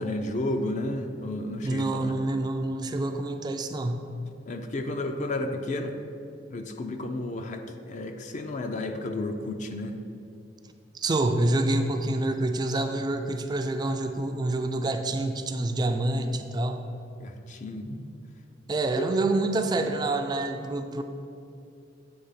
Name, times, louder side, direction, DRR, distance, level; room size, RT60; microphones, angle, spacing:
voice 1, 0.0-2.2 4.2-5.9 6.5-9.9 17.2-18.2 19.0-19.1, left 1 dB, 40° left, 6 dB, 0.4 m, -32 dB
voice 2, 1.6-4.1 10.9-16.8 18.7-21.0, right 2 dB, 25° right, 6 dB, 0.3 m, -27 dB
7.9 x 3.3 x 5.6 m, 2.5 s
head